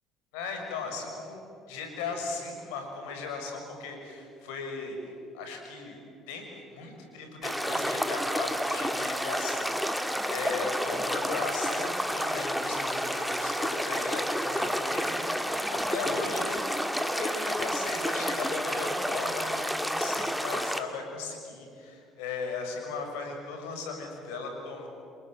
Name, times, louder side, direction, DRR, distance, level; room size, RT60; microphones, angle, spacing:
voice 1, 0.3-1.4 1.7-5.0 5.3-6.0 6.3-15.3 15.7-24.9, left 4 dB, 75° left, 3 dB, 6.1 m, -37 dB
sound 1, 7.4-20.8, equal, ahead, 2.4 m, -30 dB
29.0 x 23.5 x 7.7 m, 2.7 s
hypercardioid pair, 60°, 0 cm